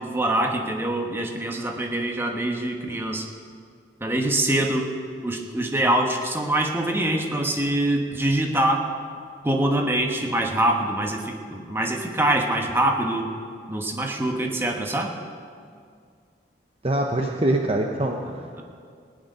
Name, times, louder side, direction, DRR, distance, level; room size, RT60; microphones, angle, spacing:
voice 1, 0.0-3.2 4.0-4.9 5.2-8.9 9.4-13.3 13.7-15.1 18.3-18.6, right 1 dB, 15° right, 2 dB, 1.2 m, -24 dB
voice 2, 16.8-18.2, right 1 dB, 30° right, 2 dB, 0.8 m, -23 dB
17.5 x 6.6 x 9.4 m, 2.2 s
head